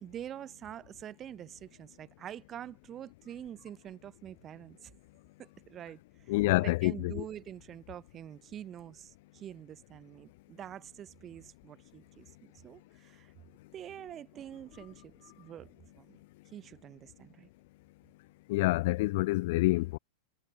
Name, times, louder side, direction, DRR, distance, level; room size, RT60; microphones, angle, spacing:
voice 1, 0.0-4.9 5.4-6.0 6.6-12.3 12.6-13.3 13.7-16.2 16.5-17.5, right 10 dB, 30° right, 0.5 m, -46 dB
voice 2, 6.3-7.2 18.5-20.0, left 20 dB, 50° left, 0.3 m, -27 dB
figure-of-eight pair, 90°, 0 cm